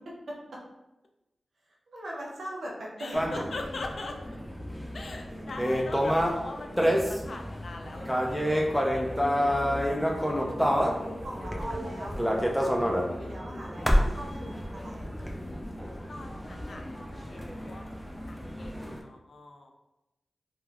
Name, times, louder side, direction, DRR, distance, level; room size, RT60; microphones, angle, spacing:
voice 1, 0.3-0.6 1.9-3.4 9.9-15.6, right 1 dB, 80° right, -3 dB, 0.6 m, -41 dB
voice 2, 3.0-4.2 4.9-9.0 9.3-10.0 16.1-17.0 17.3-17.8 18.3-19.7, left 3 dB, 70° left, 3 dB, 0.4 m, -42 dB
sound 1, 3.1-19.0, equal, 5° left, 0.5 m, -29 dB
2.3 x 2.2 x 3.2 m, 0.97 s
cardioid pair, 45°, 0 cm